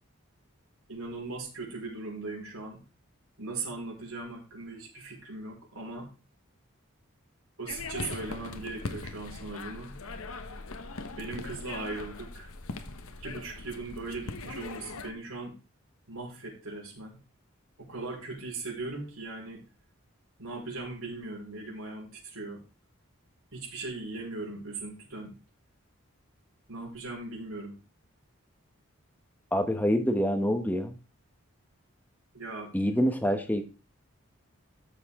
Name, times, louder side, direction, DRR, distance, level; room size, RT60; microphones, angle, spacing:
voice 1, 0.9-2.8 3.4-6.1 7.6-10.0 11.2-12.5 13.2-15.5 16.1-17.2 17.8-19.6 20.4-22.6 23.5-25.4 26.7-27.8 32.3-32.7, right 3 dB, 80° right, -1 dB, 4.9 m, -39 dB
sound 1, 7.7-15.1, left 3 dB, 80° left, 1.1 m, -40 dB
voice 2, 29.5-30.9 32.7-33.6, equal, 10° left, 7 dB, 1.0 m, -26 dB
13.0 x 6.9 x 3.6 m, 0.33 s
head